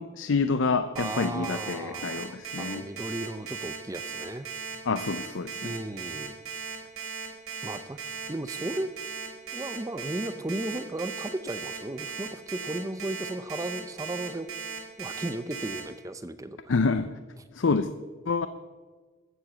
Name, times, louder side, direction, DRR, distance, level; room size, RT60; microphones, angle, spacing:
voice 1, 0.0-2.9 4.9-5.8 16.7-17.1 17.5-17.9 18.3-18.5, left 4 dB, 65° left, 11 dB, 0.5 m, -27 dB
voice 2, 0.9-4.5 5.6-6.4 7.6-8.0 8.3-8.9 9.5-14.5 15.0-16.7, right 1 dB, 15° right, 12 dB, 0.5 m, -35 dB
Alarm, 1.0-15.8, right 6 dB, 80° right, 3.8 m, -37 dB
14.0 x 7.8 x 7.3 m, 1.4 s
head